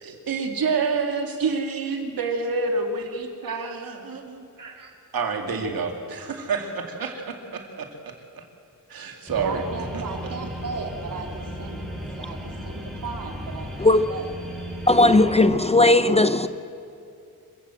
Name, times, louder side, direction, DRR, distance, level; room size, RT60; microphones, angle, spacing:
voice 1, 0.0-4.4 5.1-8.4 8.9-9.6 9.9-10.0, right 4 dB, 80° right, 3 dB, 2.4 m, -28 dB
voice 2, 4.6-4.9 9.4-11.8 12.2-14.3, right 4 dB, 65° right, 1 dB, 3.3 m, -36 dB
sound 1, 9.3-15.4, equal, ahead, 5.6 m, -35 dB
voice 3, 14.9-16.5, left 2 dB, 20° left, 12 dB, 0.5 m, -17 dB
27.0 x 15.5 x 7.7 m, 2.5 s
wide cardioid pair, 135°, 35 cm